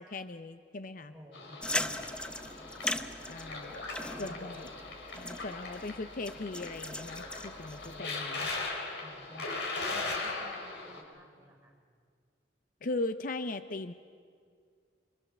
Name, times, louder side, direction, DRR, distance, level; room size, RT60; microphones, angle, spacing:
voice 1, 0.0-1.1 3.3-3.7 4.2-4.7 5.1-8.5 12.8-13.9, left 2 dB, 45° left, 10 dB, 0.7 m, -38 dB
voice 2, 1.1-3.3 4.0-4.5 7.8-8.5 9.0-11.7, equal, 15° right, -1 dB, 4.4 m, -54 dB
sound 1, 1.3-11.0, left 3 dB, 70° left, 4.4 m, -39 dB
sound 2, 1.6-8.0, left 1 dB, 5° left, 0.7 m, -39 dB
26.5 x 23.0 x 7.0 m, 2.1 s
head